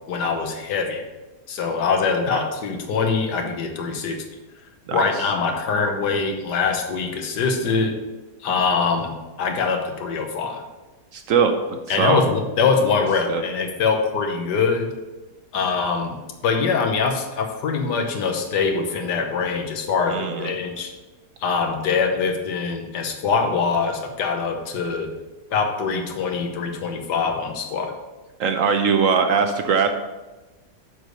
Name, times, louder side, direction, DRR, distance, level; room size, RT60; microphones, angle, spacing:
voice 1, 0.1-1.0 1.5-4.2 4.9-8.0 8.4-10.6 11.9-14.9 15.5-16.2 16.4-20.9 21.4-25.1 25.5-27.9, left 5 dB, 85° left, 4 dB, 1.6 m, -23 dB
voice 2, 11.1-12.3 13.3-13.4 20.1-20.5 28.4-29.9, right 6 dB, 65° right, 6 dB, 0.9 m, -21 dB
6.6 x 4.8 x 6.5 m, 1.1 s
omnidirectional pair, 1.8 m